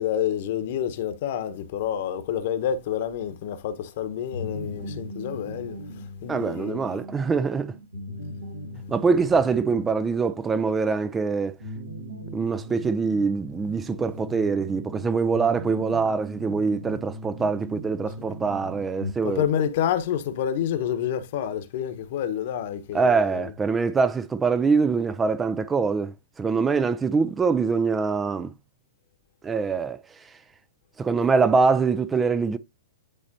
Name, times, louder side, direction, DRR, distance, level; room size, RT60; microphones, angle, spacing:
voice 1, 0.0-7.0 14.1-14.2 19.2-23.5, left 9 dB, 50° left, 1.1 m, -28 dB
sound 1, 4.3-19.1, equal, 75° right, 2.0 m, -39 dB
voice 2, 6.3-7.7 8.9-11.5 12.3-19.4 22.9-28.5 29.4-30.0 31.0-32.6, right 4 dB, 15° right, 0.4 m, -24 dB
10.0 x 4.1 x 2.7 m
figure-of-eight pair, 105°, 0 cm